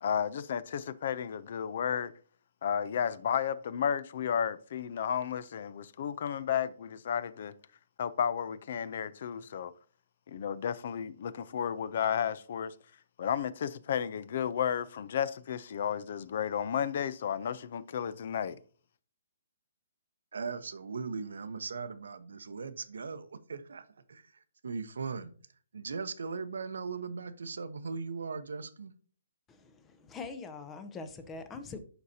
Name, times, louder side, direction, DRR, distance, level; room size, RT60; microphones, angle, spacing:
voice 1, 0.0-2.1 2.6-7.5 8.0-9.7 10.3-12.7 13.2-18.6, left 8 dB, 50° left, 0.5 m, -32 dB
voice 2, 20.3-25.3 25.7-28.9, right 5 dB, 85° right, 0.9 m, -39 dB
voice 3, 29.5-31.8, left 4 dB, 10° left, 0.6 m, -43 dB
11.0 x 4.1 x 2.7 m
hypercardioid pair, 160°, 0 cm